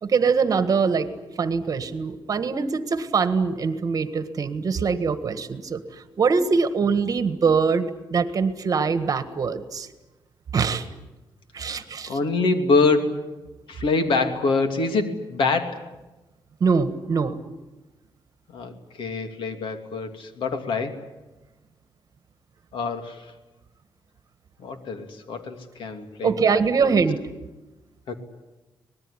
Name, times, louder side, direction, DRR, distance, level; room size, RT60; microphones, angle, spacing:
voice 1, 0.0-1.1 1.4-5.8 6.2-9.9 10.5-10.8 11.5-12.2 16.6-17.4 26.2-27.2, right 5 dB, 45° right, 11 dB, 1.6 m, -23 dB
voice 2, 12.1-13.3 13.7-15.9 18.5-21.1 22.7-23.3 24.6-26.9 28.1-28.2, left 3 dB, 80° left, 7 dB, 2.8 m, -25 dB
25.0 x 20.0 x 9.9 m, 1.1 s
wide cardioid pair, 145°, 9 cm